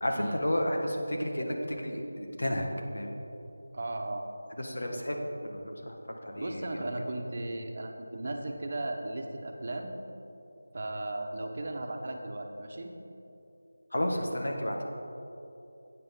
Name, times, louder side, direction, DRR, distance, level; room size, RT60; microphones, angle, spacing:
voice 1, 0.0-2.7 2.9-3.2 4.6-6.0 6.2-6.9 13.9-14.8, left 1 dB, 75° left, 2 dB, 1.6 m, -32 dB
voice 2, 3.7-4.3 6.4-9.9 10.7-12.9, right 2 dB, 45° right, 3 dB, 1.1 m, -36 dB
12.5 x 8.6 x 3.8 m, 2.9 s
figure-of-eight pair, 170°, 0 cm